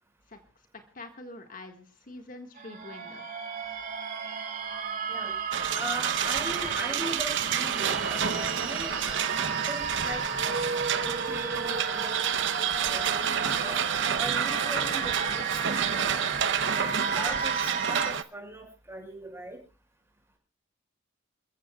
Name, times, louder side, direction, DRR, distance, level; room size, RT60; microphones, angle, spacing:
voice 1, 0.9-3.2, left 2 dB, 45° left, 4 dB, 1.8 m, -45 dB
sound 1, 2.6-18.1, right 5 dB, 45° right, 2.5 m, -34 dB
sound 2, 5.5-18.2, right 8 dB, 70° right, 0.8 m, -29 dB
voice 2, 5.7-10.5 11.0-13.7 14.2-16.2 16.7-19.6, right 1 dB, 15° right, 2 dB, 6.0 m, -40 dB
sound 3, 6.5-7.0 7.3-18.0, equal, 15° left, 6.6 m, -46 dB
29.0 x 15.0 x 2.3 m, 0.32 s
head